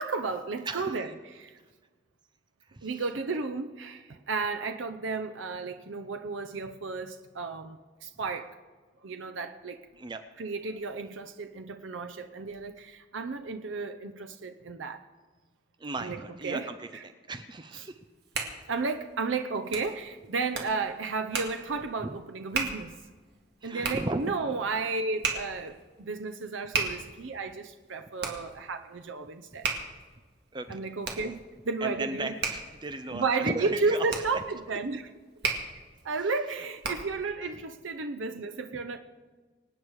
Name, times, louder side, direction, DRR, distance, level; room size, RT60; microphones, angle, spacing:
voice 1, 0.0-1.6 2.8-8.6 9.0-9.8 10.4-15.0 16.0-17.0 17.7-17.8 18.7-23.0 23.6-29.7 30.7-31.4 31.6-32.3 33.1-35.1 36.0-39.0, right 4 dB, 90° right, 6 dB, 0.7 m, -33 dB
voice 2, 0.7-1.1 2.7-3.0 10.0-10.2 15.8-18.0 22.0-22.2 23.6-24.3 30.5-30.8 31.8-34.1 34.3-34.4 38.7-38.8, right 2 dB, 25° right, 9 dB, 0.6 m, -36 dB
Hands, 17.9-37.2, right 4 dB, 60° right, 2.1 m, -37 dB
25.5 x 9.0 x 4.8 m, 1.4 s
head